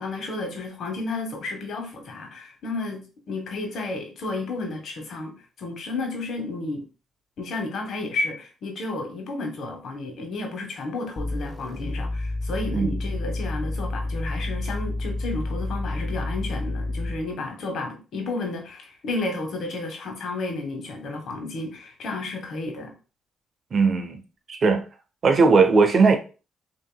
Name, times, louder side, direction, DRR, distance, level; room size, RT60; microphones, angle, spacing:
voice 1, 0.0-6.8 7.4-22.9, left 2 dB, 65° left, 1.4 m, -32 dB
sound 1, 11.2-17.3, left 2 dB, 25° left, 0.8 m, -29 dB
voice 2, 23.7-24.2 24.5-24.8 25.2-26.2, right 4 dB, 50° right, 0.8 m, -18 dB
5.8 x 2.9 x 2.3 m
cardioid pair, 90°, 0 cm